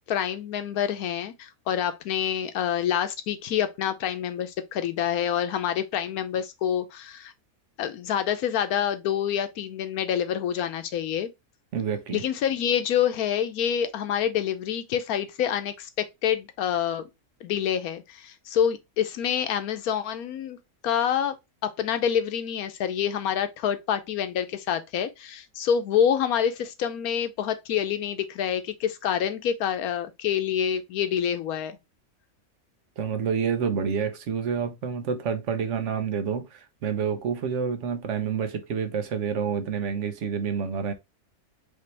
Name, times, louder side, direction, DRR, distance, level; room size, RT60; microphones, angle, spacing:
voice 1, 0.1-7.3 7.8-11.3 12.1-17.0 17.4-20.6 20.8-21.3 21.6-31.8, left 9 dB, 90° left, 1.2 m, -27 dB
voice 2, 11.7-12.2 33.0-40.9, right 6 dB, 60° right, 1.1 m, -28 dB
5.1 x 2.8 x 3.2 m
omnidirectional pair, 1.5 m